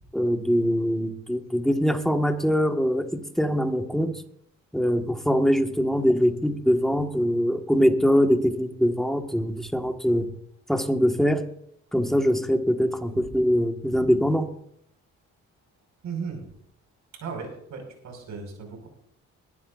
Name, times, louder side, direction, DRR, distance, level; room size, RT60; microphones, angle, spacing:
voice 1, 0.1-4.1 4.7-10.3 10.7-11.4 11.9-14.5, equal, ahead, 4 dB, 1.7 m, -23 dB
voice 2, 16.0-16.4 17.1-18.9, right 5 dB, 70° right, 2 dB, 5.6 m, -36 dB
21.5 x 12.5 x 2.6 m, 0.69 s
cardioid pair, 90°, 30 cm